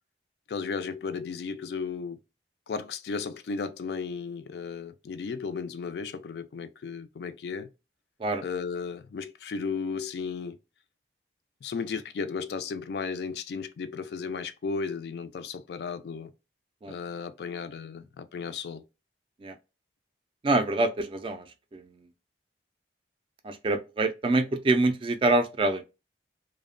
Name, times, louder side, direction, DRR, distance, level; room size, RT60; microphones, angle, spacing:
voice 1, 0.5-2.2 2.7-7.7 8.4-10.6 11.6-16.3 16.9-18.8, left 5 dB, 65° left, 0.3 m, -34 dB
voice 2, 20.4-21.5 21.7-22.0 23.4-25.8, right 2 dB, 30° right, 0.3 m, -25 dB
2.7 x 2.0 x 2.4 m
head